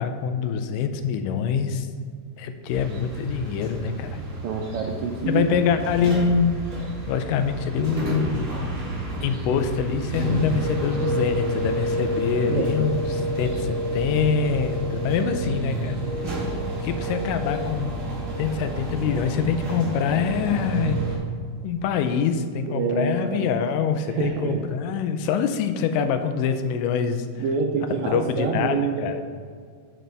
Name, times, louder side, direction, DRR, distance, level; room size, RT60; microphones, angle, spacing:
voice 1, 0.0-1.9 2.4-4.2 5.3-6.6 7.1-8.5 9.2-16.0 16.8-18.1 18.4-21.0 21.6-27.4 28.1-29.2, left 6 dB, 90° left, 8 dB, 2.2 m, -25 dB
sound 1, 2.7-21.2, right 1 dB, 30° right, 1.5 m, -29 dB
voice 2, 4.2-5.5 12.4-12.7 22.7-23.5 24.1-24.6 27.4-29.1, right 5 dB, 85° right, 1 dB, 1.6 m, -27 dB
7.5 x 6.6 x 3.4 m, 2.1 s
omnidirectional pair, 3.7 m